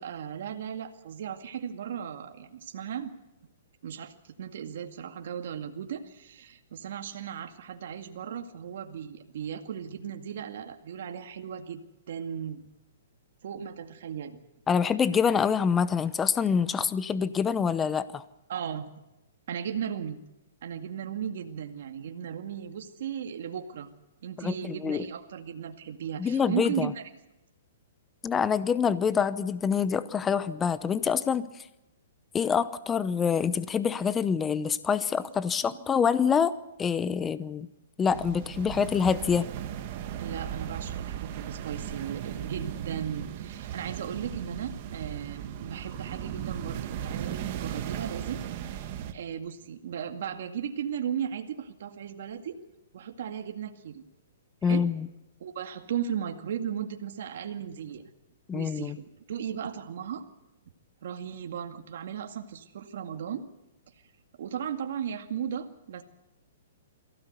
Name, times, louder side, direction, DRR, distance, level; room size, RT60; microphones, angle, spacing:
voice 1, 0.0-3.1 3.8-11.8 12.1-12.6 13.4-14.4 18.5-18.9 19.5-20.2 20.6-23.9 24.2-26.9 35.7-35.8 40.2-52.6 52.9-54.0 54.6-54.9 55.4-58.0 58.5-60.2 61.0-63.4 64.4-66.0, right 8 dB, 60° right, 5 dB, 2.2 m, -36 dB
voice 2, 14.7-18.2 24.4-25.1 26.2-26.9 28.2-31.5 32.3-36.5 36.8-37.7 38.0-39.5 54.6-55.1 58.5-59.0, left 6 dB, 15° left, 15 dB, 0.8 m, -26 dB
sound 1, 38.1-49.1, right 10 dB, 40° right, 2.0 m, -37 dB
22.5 x 16.5 x 8.2 m, 0.92 s
hypercardioid pair, 155°, 0 cm